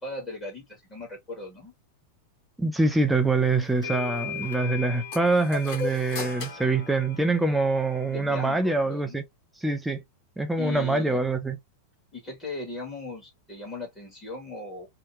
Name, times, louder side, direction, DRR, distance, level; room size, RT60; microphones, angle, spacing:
voice 1, 0.0-1.7 8.1-9.2 10.6-11.2 12.1-14.9, left 2 dB, 15° left, 1.4 m, -38 dB
voice 2, 2.6-9.2 9.6-10.0 10.4-11.6, right 3 dB, 5° right, 0.5 m, -25 dB
sound 1, 3.2-3.3 3.8-8.7, left 6 dB, 70° left, 0.8 m, -40 dB
sound 2, 5.1-7.8, left 4 dB, 45° left, 1.2 m, -37 dB
2.8 x 2.2 x 3.1 m
figure-of-eight pair, 90°, 0 cm